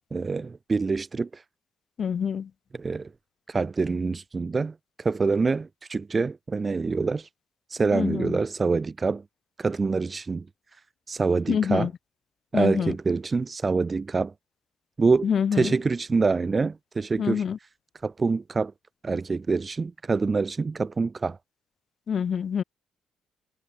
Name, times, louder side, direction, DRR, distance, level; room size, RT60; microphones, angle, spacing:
voice 1, 0.1-1.3 2.8-3.1 3.5-4.7 5.0-7.2 7.7-9.2 9.6-10.5 11.1-11.9 12.5-14.3 15.0-15.3 15.6-17.4 18.0-18.7 19.0-21.4, right 4 dB, 30° right, 0.9 m, -25 dB
voice 2, 2.0-2.5 7.9-8.4 11.5-11.9 12.5-12.9 15.2-15.7 17.2-17.6 22.1-22.6, left 7 dB, 50° left, 0.3 m, -26 dB
cardioid pair, 90°, 0 cm